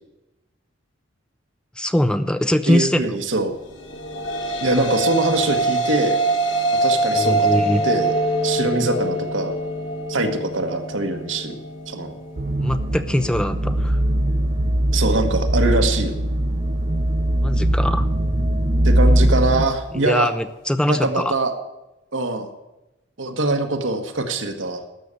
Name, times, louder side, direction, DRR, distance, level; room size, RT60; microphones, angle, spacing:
voice 1, 1.8-3.1 7.1-7.8 12.6-14.0 17.4-18.1 19.9-21.3, left 1 dB, 5° left, 10 dB, 0.4 m, -22 dB
voice 2, 2.7-3.5 4.6-6.2 6.8-8.2 8.4-9.5 10.1-11.5 11.9-12.1 14.9-16.2 18.8-20.3 20.9-21.5 22.1-22.5 23.2-24.8, right 2 dB, 75° right, 5 dB, 1.5 m, -23 dB
sound 1, 3.8-12.4, right 2 dB, 80° left, 2.2 m, -24 dB
sound 2, 12.4-19.7, right 1 dB, 35° right, 0.7 m, -20 dB
13.0 x 6.6 x 8.3 m, 0.98 s
head